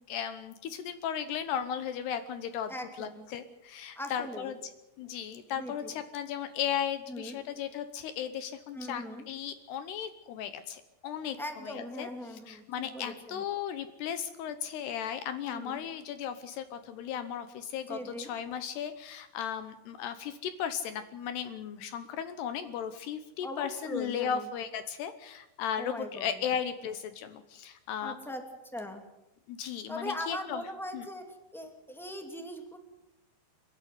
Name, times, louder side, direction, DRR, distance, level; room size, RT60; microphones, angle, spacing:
voice 1, 0.0-4.5 5.0-11.4 11.6-28.2 29.5-30.6 30.9-31.1, left 8 dB, 75° left, 10 dB, 2.9 m, -36 dB
voice 2, 2.7-3.3 3.9-4.5 5.6-5.9 7.1-7.4 8.7-9.3 11.4-13.4 15.5-15.8 17.9-18.3 23.4-24.4 25.8-26.3 28.0-28.4 28.7-29.0 29.9-31.2 31.5-32.8, left 1 dB, ahead, 5 dB, 0.8 m, -40 dB
29.5 x 11.5 x 9.4 m, 0.94 s
omnidirectional pair, 5.2 m